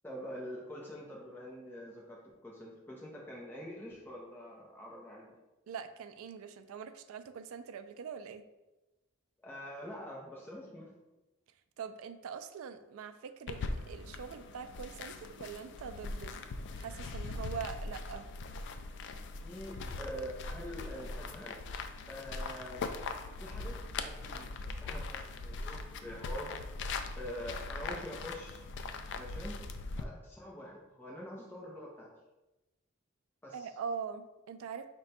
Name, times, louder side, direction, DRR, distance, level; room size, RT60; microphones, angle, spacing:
voice 1, 0.0-5.3 9.4-10.9 19.4-21.6 22.1-22.9 23.4-26.5 27.2-28.6 29.1-29.6 30.0-32.1 33.4-33.7, equal, 10° left, -4 dB, 0.6 m, -45 dB
voice 2, 5.7-8.4 11.8-16.4 16.8-18.3 33.5-34.9, right 6 dB, 70° right, 9 dB, 0.3 m, -43 dB
sound 1, 13.5-30.0, left 3 dB, 55° left, 0.3 m, -41 dB
4.9 x 2.2 x 4.1 m, 1.0 s
head